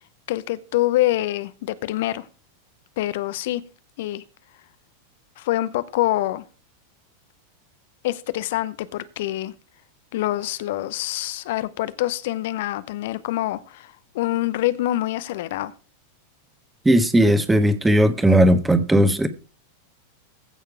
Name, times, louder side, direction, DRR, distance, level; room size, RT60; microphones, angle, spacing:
voice 1, 0.3-2.3 3.0-3.6 4.0-4.2 5.4-6.4 8.0-9.5 10.1-15.7, left 15 dB, 55° left, 0.7 m, -25 dB
voice 2, 16.8-19.3, right 1 dB, 5° right, 1.3 m, -17 dB
15.5 x 6.5 x 4.8 m
figure-of-eight pair, 90°, 0 cm